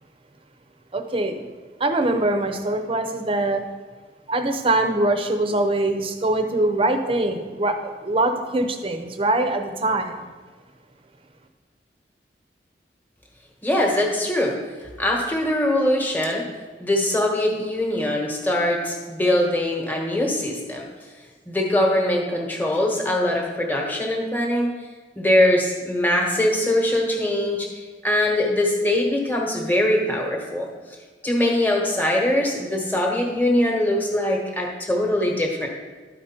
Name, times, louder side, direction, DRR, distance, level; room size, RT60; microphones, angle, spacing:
voice 1, 0.9-1.5 1.8-3.6 4.3-10.3, right 2 dB, 30° right, 6 dB, 0.7 m, -23 dB
voice 2, 13.6-14.6 15.0-16.5 16.8-20.9 21.5-24.7 25.1-27.7 28.0-30.7 31.2-35.7, left 1 dB, 10° left, 0 dB, 1.2 m, -22 dB
12.5 x 4.9 x 4.4 m, 1.4 s
head